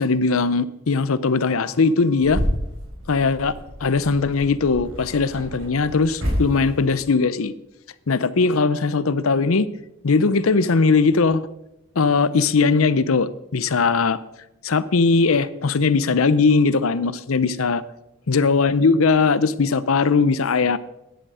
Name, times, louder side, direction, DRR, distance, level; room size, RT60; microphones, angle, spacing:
voice 1, 0.0-2.4 3.1-3.5 3.8-7.5 8.1-9.7 10.0-11.4 12.0-14.2 14.6-17.8 18.3-20.8, left 4 dB, 85° left, 16 dB, 0.7 m, -19 dB
sound 1, 2.2-7.1, equal, 70° right, 4.8 m, -30 dB
14.0 x 10.5 x 4.9 m, 0.87 s
head